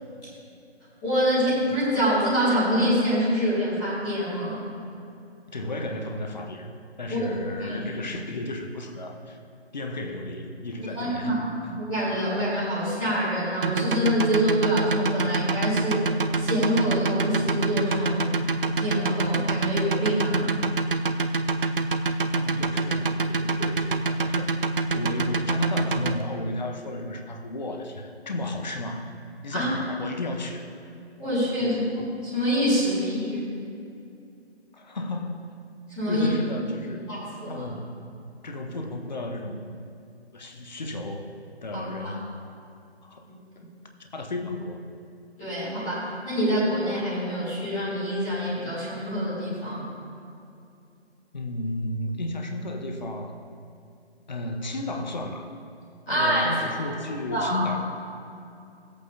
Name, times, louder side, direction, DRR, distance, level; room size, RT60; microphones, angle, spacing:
voice 1, 1.0-4.6 7.1-7.2 7.6-7.8 10.9-16.0 16.3-18.3 18.8-20.5 29.5-29.7 31.2-31.8 32.2-33.4 36.0-36.3 36.8-37.7 41.7-42.1 45.4-49.9 56.1-56.6 57.3-57.7, equal, 5° left, -16 dB, 1.0 m, -26 dB
voice 2, 5.5-6.7 7.0-9.4 9.7-11.7 22.3-24.5 24.9-29.1 29.4-30.7 31.6-31.9 34.7-35.5 36.1-37.0 37.5-38.0 38.4-39.7 40.3-41.3 41.6-42.3 43.0-43.6 44.0-44.8 51.3-53.4 54.3-55.5 56.1-57.8, left 2 dB, 40° left, 4 dB, 0.9 m, -33 dB
sound 1, 13.6-26.2, right 3 dB, 55° right, 0.5 m, -25 dB
17.5 x 8.4 x 2.7 m, 2.6 s
figure-of-eight pair, 165°, 33 cm